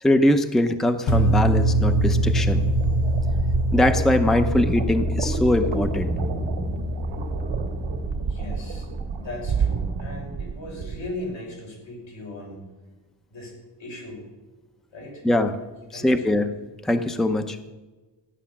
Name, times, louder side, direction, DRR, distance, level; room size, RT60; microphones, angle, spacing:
voice 1, 0.0-2.6 3.7-6.1 15.2-15.5 15.9-16.5 16.8-17.6, left 1 dB, ahead, 8 dB, 0.7 m, -22 dB
sound 1, 1.1-9.2, equal, 55° left, 1.3 m, -24 dB
sound 2, 1.7-11.2, right 6 dB, 85° right, 1.9 m, -30 dB
voice 2, 8.3-8.9 9.1-12.6 13.3-13.5 13.8-14.2 14.9-15.2 15.9-16.4, left 2 dB, 85° left, -2 dB, 6.5 m, -37 dB
15.5 x 10.5 x 7.2 m, 1.2 s
wide cardioid pair, 175°, 44 cm